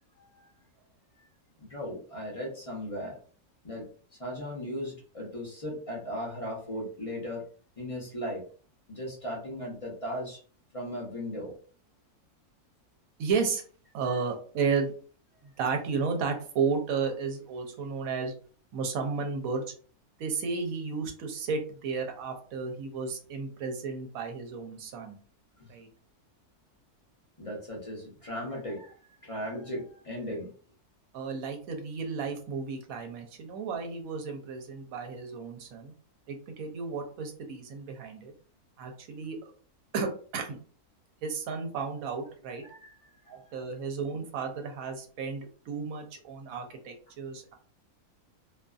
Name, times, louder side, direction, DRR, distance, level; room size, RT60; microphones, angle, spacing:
voice 1, 0.2-0.5 1.6-3.2 3.6-3.8 4.2-7.4 7.8-8.4 8.9-10.4 10.7-11.5 25.6-25.7 27.4-29.0 29.2-30.5 42.6-43.6, equal, 45° left, -3 dB, 0.4 m, -37 dB
voice 2, 13.2-13.6 13.9-14.9 15.6-18.3 18.7-19.7 20.2-25.2 25.7-25.9 31.1-35.9 36.3-38.3 38.8-39.5 39.9-40.6 41.2-42.6 43.3-47.6, right 5 dB, 70° right, 4 dB, 0.9 m, -33 dB
2.5 x 2.5 x 2.2 m, 0.43 s
omnidirectional pair, 1.6 m